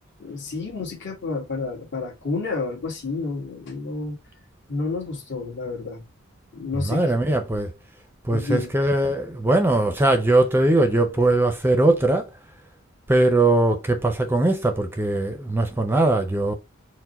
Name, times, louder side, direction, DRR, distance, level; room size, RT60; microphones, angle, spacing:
voice 1, 0.2-4.2 4.7-6.0 6.5-7.1 8.3-8.7, left 3 dB, 60° left, 1.5 m, -30 dB
voice 2, 6.8-7.7 8.2-12.3 13.1-16.5, right 2 dB, 10° right, 0.5 m, -20 dB
4.6 x 2.1 x 4.0 m
head